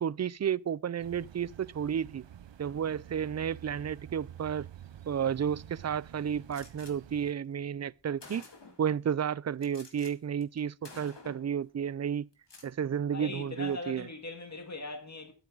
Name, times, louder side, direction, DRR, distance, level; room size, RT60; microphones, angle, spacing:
voice 1, 0.0-2.2 2.6-4.7 5.1-8.4 8.8-12.3 12.6-14.0, right 8 dB, 40° right, 0.4 m, -32 dB
sound 1, 1.0-7.3, right 10 dB, 85° right, 0.6 m, -49 dB
Gunshot gunfire, 6.5-6.9 7.8-7.9 8.2-8.9 9.6-10.1 10.4-10.6 10.8-11.5 12.3-12.7, left 3 dB, 70° left, 2.2 m, -50 dB
voice 2, 13.1-15.3, left 2 dB, 40° left, 2.0 m, -40 dB
11.0 x 9.2 x 3.9 m
wide cardioid pair, 45°, 43 cm